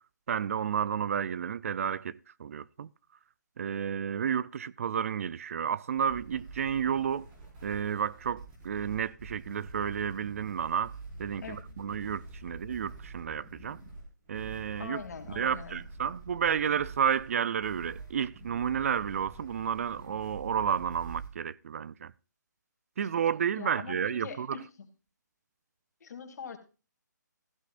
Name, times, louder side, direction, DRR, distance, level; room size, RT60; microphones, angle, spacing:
voice 1, 0.3-2.9 3.6-7.3 7.6-13.8 14.3-15.0 15.3-22.1 23.0-24.6, right 8 dB, 45° right, 0.5 m, -31 dB
sound 1, 6.0-21.3, right 2 dB, 20° right, 5.1 m, -46 dB
voice 2, 11.4-11.8 14.8-15.8 23.5-24.9 26.0-26.6, left 6 dB, 55° left, 2.8 m, -43 dB
15.0 x 11.5 x 2.5 m
hypercardioid pair, 160°, 10 cm